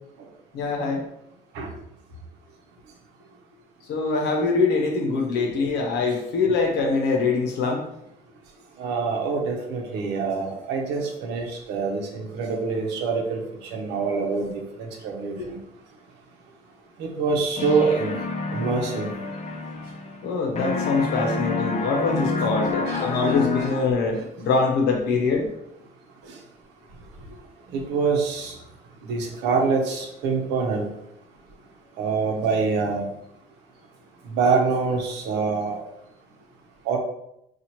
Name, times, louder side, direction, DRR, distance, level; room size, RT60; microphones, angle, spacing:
voice 1, 0.5-1.0 3.9-7.8 15.4-15.5 20.2-25.5, left 4 dB, 80° left, 2 dB, 0.8 m, -23 dB
voice 2, 8.8-13.4 13.7-15.6 17.0-18.1 18.5-19.1 22.9-23.3 23.6-23.7 27.7-28.6 29.1-30.9 32.0-33.1 34.3-35.8 36.9-37.0, right 4 dB, 90° right, 1 dB, 0.8 m, -25 dB
sound 1, 17.6-20.3 20.6-24.2, left 4 dB, 40° left, 0.5 m, -28 dB
4.2 x 2.4 x 3.0 m, 0.80 s
cardioid pair, 110°, 17 cm